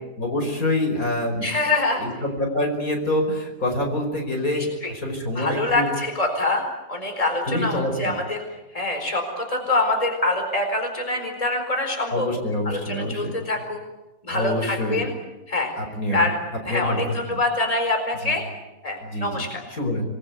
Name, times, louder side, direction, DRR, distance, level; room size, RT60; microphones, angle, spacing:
voice 1, 0.2-1.5 2.0-5.9 7.4-8.2 12.1-13.3 14.3-15.1 15.8-16.3 16.7-17.4 18.2-18.4 19.0-20.0, left 1 dB, 55° left, 3 dB, 5.7 m, -26 dB
voice 2, 1.4-2.0 4.5-4.9 5.4-6.6 6.9-8.4 8.7-12.3 12.7-13.8 14.3-15.1 15.5-15.7 16.1-16.4 16.6-18.4 18.8-19.6, left 2 dB, 20° left, 4 dB, 4.6 m, -25 dB
28.0 x 21.5 x 9.4 m, 1.0 s
omnidirectional pair, 1.8 m